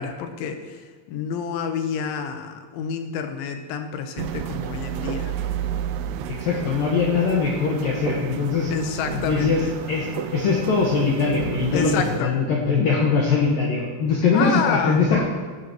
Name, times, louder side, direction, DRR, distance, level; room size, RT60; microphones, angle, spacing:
voice 1, 0.0-5.4 8.7-9.7 11.7-12.3 14.3-15.0, left 7 dB, 85° left, 6 dB, 3.4 m, -28 dB
sound 1, 4.2-12.2, right 9 dB, 85° right, 2.3 m, -31 dB
voice 2, 6.4-8.7 9.3-9.6 9.9-10.1 10.3-15.2, left 4 dB, 65° left, -2 dB, 2.5 m, -21 dB
18.5 x 12.5 x 3.0 m, 1.5 s
omnidirectional pair, 5.4 m